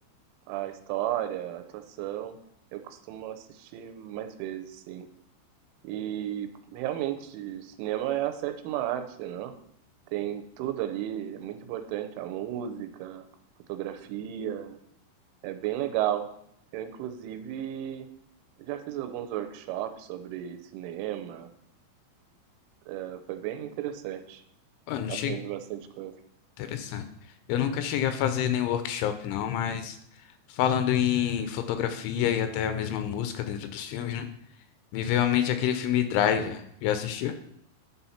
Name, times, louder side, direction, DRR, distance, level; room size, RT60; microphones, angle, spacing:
voice 1, 0.5-2.4 2.7-5.1 5.8-9.5 10.1-13.2 13.7-14.8 15.4-16.3 16.7-18.1 18.6-21.5 22.9-24.4 25.1-26.1, right 12 dB, 85° right, 8 dB, 3.2 m, -34 dB
voice 2, 24.9-25.4 26.6-27.1 27.5-30.0 30.5-34.3 34.9-37.3, left 10 dB, 80° left, 8 dB, 2.9 m, -27 dB
10.5 x 4.2 x 5.7 m, 0.72 s
omnidirectional pair, 5.6 m